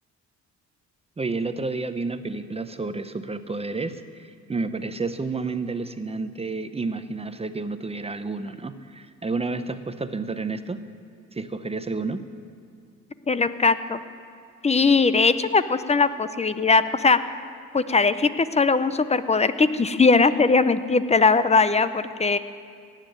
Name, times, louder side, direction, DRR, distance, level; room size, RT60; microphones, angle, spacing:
voice 1, 1.2-10.8 11.3-12.2, right 3 dB, 20° right, 10 dB, 0.7 m, -30 dB
voice 2, 13.3-14.0 14.6-17.2 17.7-22.4, left 4 dB, 20° left, 13 dB, 0.6 m, -20 dB
17.5 x 7.5 x 9.0 m, 2.3 s
cardioid pair, 90°, 30 cm